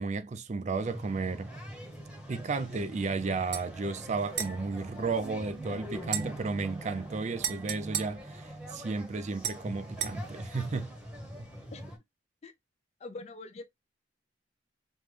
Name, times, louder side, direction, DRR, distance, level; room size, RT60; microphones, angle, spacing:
voice 1, 0.0-1.5 2.3-10.9, right 4 dB, 40° right, 0.4 m, -33 dB
sound 1, 0.8-12.0, equal, 5° right, 0.9 m, -43 dB
sound 2, 3.5-3.7 4.3-5.6 6.1-8.9 9.4-10.2, right 9 dB, 65° right, 0.7 m, -38 dB
voice 2, 13.0-13.6, left 3 dB, 35° left, 0.4 m, -43 dB
5.2 x 2.1 x 3.2 m
head